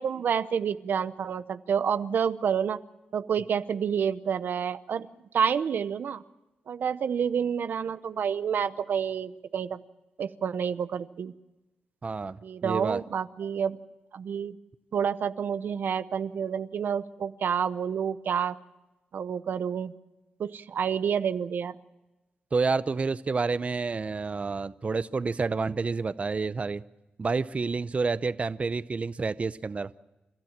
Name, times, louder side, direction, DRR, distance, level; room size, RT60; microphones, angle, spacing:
voice 1, 0.0-2.8 3.1-5.1 5.3-6.2 6.7-9.8 10.2-11.3 12.4-13.8 14.1-14.6 14.9-18.6 19.1-19.9 20.4-21.8, right 7 dB, 75° right, 13 dB, 0.8 m, -29 dB
voice 2, 12.0-12.4 12.6-13.0 22.5-26.8 27.2-29.9, right 4 dB, 40° right, 14 dB, 0.7 m, -29 dB
29.5 x 13.5 x 7.4 m, 1.0 s
cardioid pair, 70°, 3 cm